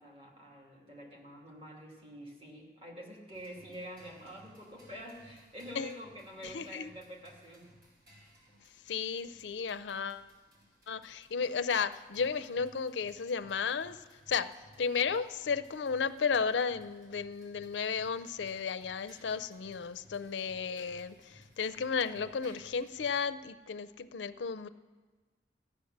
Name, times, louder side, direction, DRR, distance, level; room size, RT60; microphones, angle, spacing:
voice 1, 0.0-7.7, equal, 30° right, -1 dB, 2.3 m, -47 dB
sound 1, 3.3-23.2, equal, 50° right, 4.2 m, -61 dB
voice 2, 6.4-6.9 8.9-10.3 10.9-14.0 14.3-14.5 14.8-24.7, left 6 dB, 80° left, 11 dB, 0.5 m, -33 dB
13.5 x 10.0 x 6.5 m, 1.4 s
head